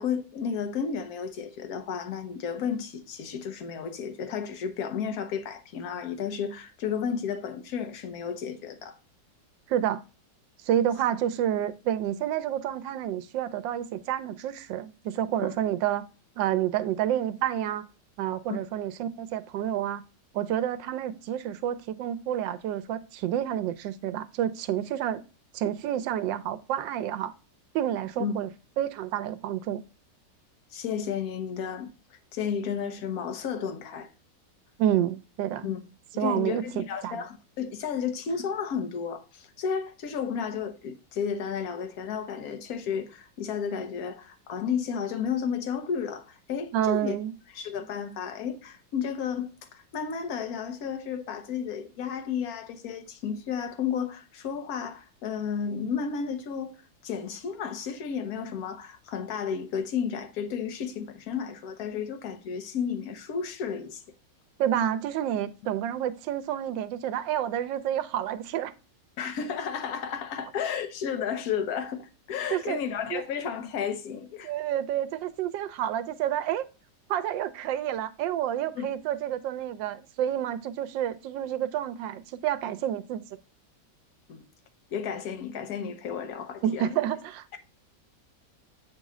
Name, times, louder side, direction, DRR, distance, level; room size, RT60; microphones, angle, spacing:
voice 1, 0.0-9.0 18.5-18.6 28.2-28.3 30.7-31.9 32.3-34.1 35.6-35.8 36.1-47.2 47.5-56.7 57.0-64.0 69.2-74.5 78.7-78.9 84.3-84.4 84.9-86.9, left 7 dB, 60° left, 1.2 m, -32 dB
voice 2, 9.7-10.0 10.6-16.1 16.4-17.9 18.2-20.0 20.3-25.2 25.5-27.3 27.7-28.5 28.8-29.8 34.8-35.7 36.2-37.2 46.7-47.3 64.6-68.7 72.5-72.8 73.1-73.2 74.4-76.7 77.1-83.2 86.6-87.6, right 11 dB, 85° right, 1.3 m, -29 dB
8.3 x 3.1 x 3.6 m
omnidirectional pair, 2.0 m